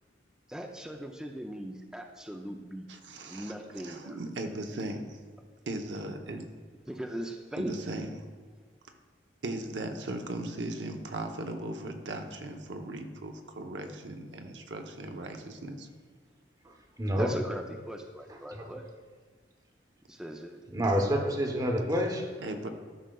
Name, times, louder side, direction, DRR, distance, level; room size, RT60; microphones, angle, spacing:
voice 1, 0.5-2.9 3.3-4.2 6.9-7.7 17.2-18.9 20.1-20.6, equal, 5° right, 2 dB, 0.4 m, -39 dB
voice 2, 2.9-5.2 5.7-6.5 7.6-8.1 9.4-15.9 20.8-20.9 22.4-22.7, right 2 dB, 80° right, 4 dB, 0.8 m, -38 dB
voice 3, 16.6-17.3 18.6-18.7 20.7-22.3, equal, 20° right, 3 dB, 0.9 m, -28 dB
12.5 x 6.1 x 2.3 m, 1.5 s
head